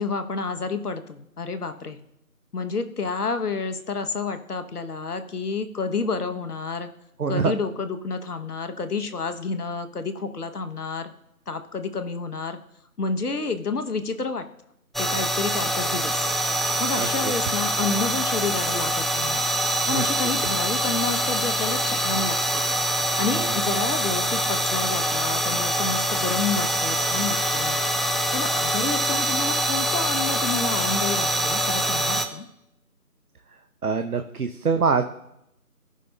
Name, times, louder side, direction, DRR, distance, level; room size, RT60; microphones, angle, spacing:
voice 1, 0.0-2.0 2.5-6.9 7.3-11.1 11.5-12.6 13.0-14.4 15.0-16.3 16.8-19.4 19.9-22.6 23.2-27.8 28.3-32.5, left 4 dB, 75° left, 9 dB, 0.9 m, -29 dB
voice 2, 7.2-7.5 17.0-17.3 19.9-20.1 33.8-35.0, right 5 dB, 70° right, 7 dB, 0.7 m, -24 dB
sound 1, 14.9-32.3, right 1 dB, ahead, 0.4 m, -24 dB
16.0 x 5.4 x 2.2 m, 0.81 s
figure-of-eight pair, 175°, 46 cm